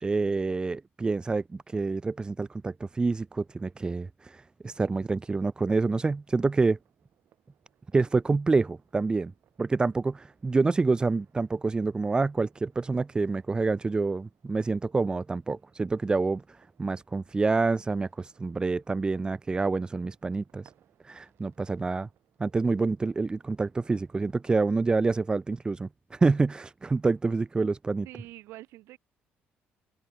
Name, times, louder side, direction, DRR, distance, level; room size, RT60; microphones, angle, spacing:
voice 1, 0.0-6.8 7.9-9.3 9.6-20.7 21.0-22.1 22.4-28.1, right 3 dB, 20° right, 0.4 m, -27 dB
sound 1, 5.5-24.6, right 11 dB, 65° right, 6.8 m, -69 dB
voice 2, 28.0-29.0, right 17 dB, 80° right, 2.3 m, -46 dB
cardioid pair, 90°, 4 cm